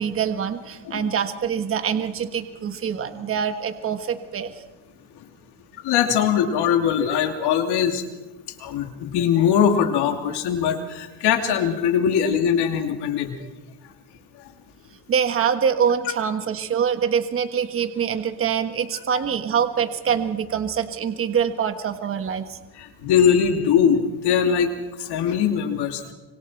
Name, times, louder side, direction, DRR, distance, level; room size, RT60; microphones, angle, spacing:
voice 1, 0.0-4.5 15.1-22.6, right 7 dB, 30° right, 9 dB, 1.4 m, -24 dB
voice 2, 5.7-8.0 8.6-13.3 19.1-19.2 22.8-24.7 25.0-26.0, left 8 dB, 65° left, 4 dB, 3.0 m, -21 dB
25.5 x 25.0 x 4.6 m, 1.1 s
cardioid pair, 135°, 43 cm